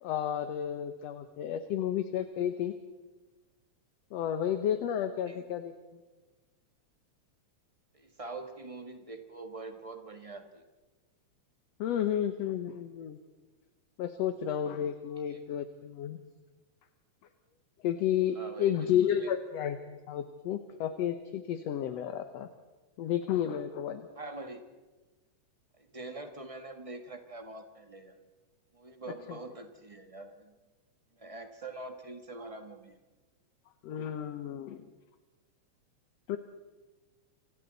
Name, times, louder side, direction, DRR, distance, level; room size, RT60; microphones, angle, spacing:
voice 1, 0.0-2.7 4.1-5.7 11.8-13.2 14.0-16.2 17.8-22.5 23.0-24.1 29.3-29.4 33.8-34.8 36.3-36.4, left 10 dB, 70° left, 8 dB, 2.0 m, -32 dB
voice 2, 7.9-10.6 15.3-15.4 18.3-19.3 24.1-24.6 25.8-28.2 28.7-30.6 31.2-33.0, right 2 dB, 30° right, 5 dB, 0.6 m, -44 dB
29.0 x 26.0 x 4.0 m, 1.2 s
omnidirectional pair, 3.3 m